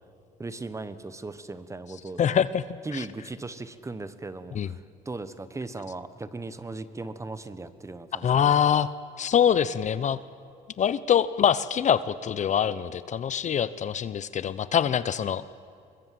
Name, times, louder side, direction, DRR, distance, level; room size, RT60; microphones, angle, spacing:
voice 1, 0.4-2.2 2.8-8.4, right 3 dB, 15° right, 13 dB, 1.3 m, -38 dB
voice 2, 2.2-2.6 2.9-3.0 4.5-4.7 8.2-8.9 9.2-10.2 10.8-15.4, left 8 dB, 45° left, 16 dB, 0.9 m, -24 dB
24.5 x 21.5 x 7.8 m, 2.4 s
cardioid pair, 110°, 17 cm